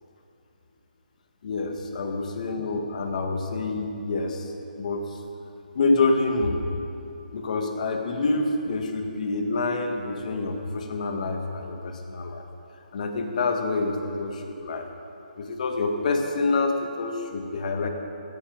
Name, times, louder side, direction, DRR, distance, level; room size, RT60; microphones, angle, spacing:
voice 1, 1.4-4.5 4.8-5.2 5.8-6.6 7.3-12.5 12.9-14.9 15.4-17.9, left 3 dB, 50° left, 4 dB, 1.8 m, -27 dB
15.5 x 13.5 x 5.4 m, 2.8 s
hypercardioid pair, 160°, 5 cm